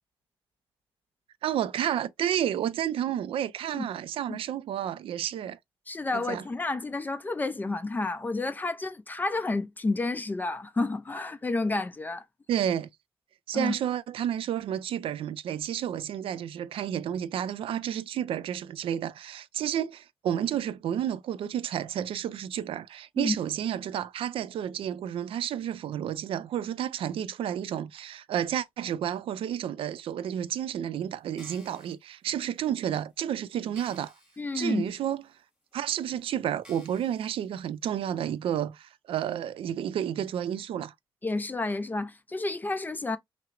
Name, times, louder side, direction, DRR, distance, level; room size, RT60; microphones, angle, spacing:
voice 1, 1.4-5.6 6.1-6.4 12.5-12.9 13.5-34.1 34.5-35.2 35.7-40.9, right 10 dB, 85° right, 0.3 m, -31 dB
voice 2, 5.9-12.2 13.5-13.7 23.2-23.4 34.4-34.9 41.2-43.2, left 3 dB, 20° left, 0.4 m, -30 dB
sound 1, 31.2-31.9 32.6-32.7 33.2-33.3 33.7-34.4 34.9-35.0 35.7-35.8 36.6-37.3 37.9-38.0, left 1 dB, 5° right, 2.0 m, -54 dB
5.6 x 2.0 x 2.4 m
wide cardioid pair, 140°, 9 cm